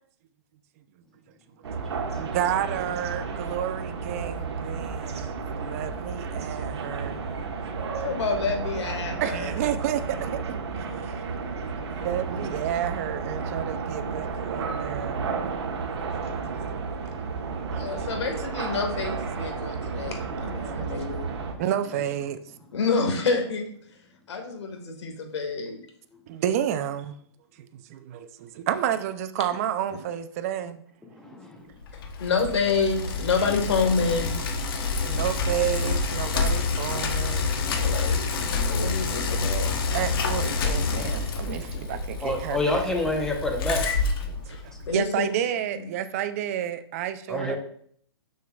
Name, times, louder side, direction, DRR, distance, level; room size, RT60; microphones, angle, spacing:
sound 1, 1.6-21.5, right 5 dB, 65° right, 1.2 m, -32 dB
voice 1, 2.0-7.2 9.2-10.6 11.0-11.2 11.9-15.3 16.7-17.0 17.2-17.3 17.7-18.0 19.5-19.6 20.6-21.1 21.6-22.4 26.3-27.2 27.6-30.8 35.0-37.5 38.1-38.2 39.9-42.9 44.2-47.6, right 10 dB, 30° right, 11 dB, 0.4 m, -31 dB
voice 2, 8.0-9.5 17.7-21.2 22.7-23.7 24.3-25.8 32.2-34.3 37.8-38.3 38.6-39.7 44.5-44.6 44.9-45.3 45.7-45.9, left 4 dB, 70° left, 4 dB, 1.6 m, -28 dB
voice 3, 31.1-31.7 40.8-41.2 42.2-44.0 47.3-47.6, left 1 dB, 5° left, 1 dB, 0.8 m, -28 dB
Bicycle, 31.8-45.0, left 4 dB, 50° left, 1.0 m, -28 dB
6.6 x 6.3 x 2.3 m, 0.63 s
hypercardioid pair, 150°, 15 cm